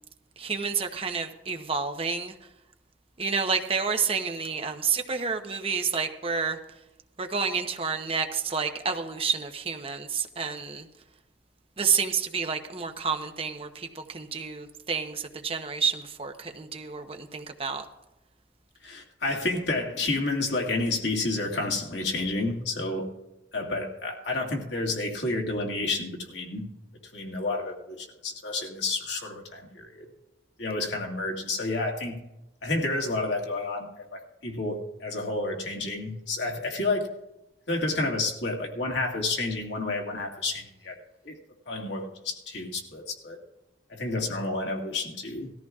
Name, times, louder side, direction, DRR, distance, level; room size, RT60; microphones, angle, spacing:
voice 1, 0.4-2.3 3.2-6.6 7.2-10.8 11.8-17.8, right 5 dB, 30° right, 6 dB, 0.8 m, -29 dB
voice 2, 18.8-23.1 23.5-26.6 27.1-30.1 30.6-32.2 32.6-37.1 37.7-40.9 41.2-41.3 41.7-43.4 43.9-45.5, left 2 dB, 80° left, 1 dB, 2.1 m, -30 dB
19.0 x 14.0 x 2.4 m, 0.93 s
head